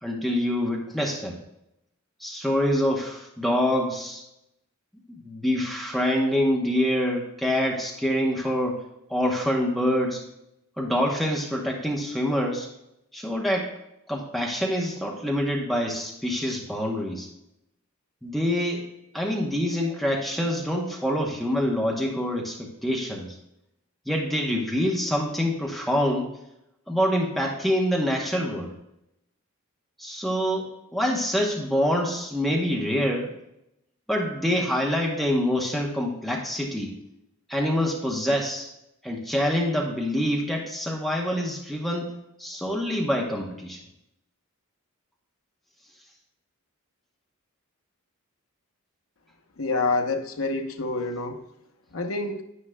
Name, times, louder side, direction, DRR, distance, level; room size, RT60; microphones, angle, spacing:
voice 1, 0.0-1.4 2.2-4.2 5.1-8.8 9.1-10.2 10.8-12.7 13.1-13.7 14.1-17.3 18.2-18.9 19.1-23.4 24.1-26.3 26.9-28.7 30.0-33.3 34.1-36.9 37.5-38.7 39.0-42.1 42.4-43.8, equal, ahead, -1 dB, 0.8 m, -26 dB
voice 2, 49.6-51.4 51.9-52.4, left 3 dB, 65° left, 5 dB, 0.9 m, -27 dB
10.5 x 9.7 x 2.2 m, 0.84 s
head